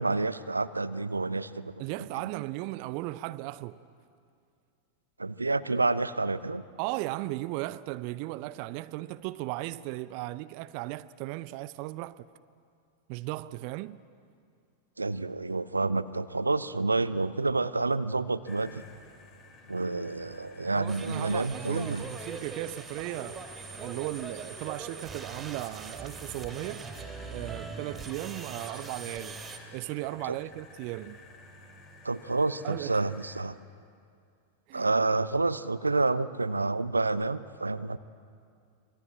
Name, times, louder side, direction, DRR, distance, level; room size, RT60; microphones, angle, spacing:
voice 1, 0.0-1.7 5.2-6.6 15.0-18.8 19.7-22.0 30.3-30.4 32.0-33.6 34.7-38.0, right 3 dB, 80° right, 0.7 m, -29 dB
voice 2, 1.8-3.8 6.8-12.3 13.1-14.0 20.7-23.4 23.7-26.8 27.3-29.4 29.7-31.2 32.6-33.0 34.7-34.9, right 17 dB, 45° right, 0.6 m, -36 dB
sound 1, 18.4-33.4, left 1 dB, 35° left, 5.0 m, -50 dB
sound 2, 20.9-29.6, right 4 dB, 20° right, 3.5 m, -42 dB
26.0 x 22.0 x 8.7 m
figure-of-eight pair, 90°, 0 cm